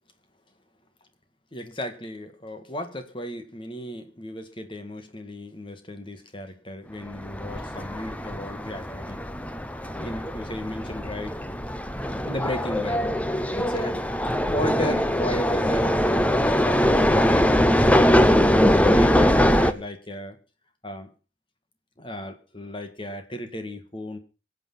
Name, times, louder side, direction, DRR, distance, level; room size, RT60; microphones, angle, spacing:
voice 1, 1.5-9.2 9.9-11.4 12.2-13.1 13.5-14.0 14.5-18.5 18.9-20.4 20.8-21.1 22.0-24.2, left 1 dB, 25° left, 1.8 m, -35 dB
sound 1, 7.1-19.7, equal, 5° left, 0.8 m, -22 dB
23.5 x 8.4 x 5.7 m
head